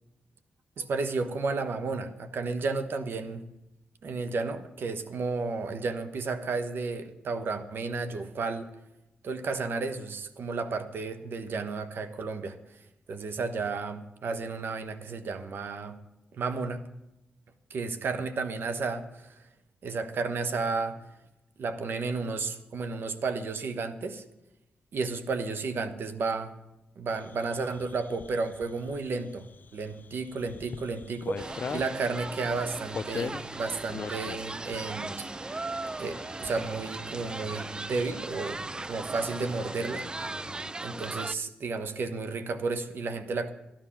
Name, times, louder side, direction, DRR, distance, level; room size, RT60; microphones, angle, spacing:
voice 1, 0.8-3.5 4.0-8.7 9.2-12.8 13.1-16.0 16.3-16.8 17.7-19.4 19.8-21.0 21.6-24.2 24.9-26.5 27.0-29.4 29.7-35.2 36.0-40.1 40.8-43.5, right 4 dB, 70° right, 8 dB, 1.1 m, -32 dB
sound 1, 27.1-40.7, left 6 dB, 55° left, 0.4 m, -44 dB
sound 2, 31.4-41.3, right 2 dB, 20° right, 0.3 m, -38 dB
13.0 x 10.5 x 5.8 m, 0.92 s
cardioid pair, 60°, 4 cm